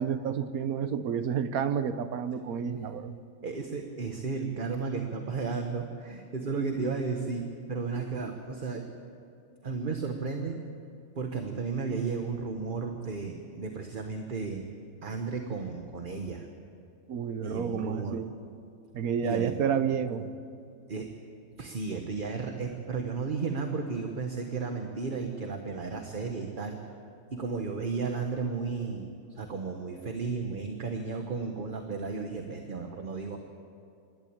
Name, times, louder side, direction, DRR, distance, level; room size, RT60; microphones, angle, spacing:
voice 1, 0.0-3.2 17.1-18.3 18.9-20.3, right 7 dB, 80° right, 11 dB, 1.4 m, -30 dB
voice 2, 3.4-8.8 9.6-10.6 11.2-14.7 15.0-16.5 17.4-18.2 19.2-19.5 20.9-21.1 21.6-26.8 27.3-33.4, right 4 dB, 40° right, 4 dB, 1.3 m, -33 dB
26.0 x 12.0 x 8.7 m, 2.5 s
omnidirectional pair, 1.5 m